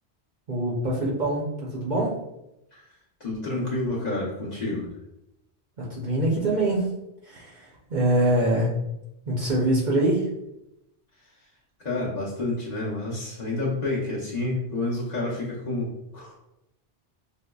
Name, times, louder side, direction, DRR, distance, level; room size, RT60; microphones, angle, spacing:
voice 1, 0.5-2.2 5.8-6.9 7.2-8.8 9.3-10.3, right 1 dB, 50° right, -4 dB, 0.7 m, -24 dB
voice 2, 3.2-4.9 11.8-16.4, left 2 dB, 45° left, -5 dB, 0.8 m, -29 dB
5.1 x 2.0 x 2.2 m, 0.86 s
omnidirectional pair, 1.1 m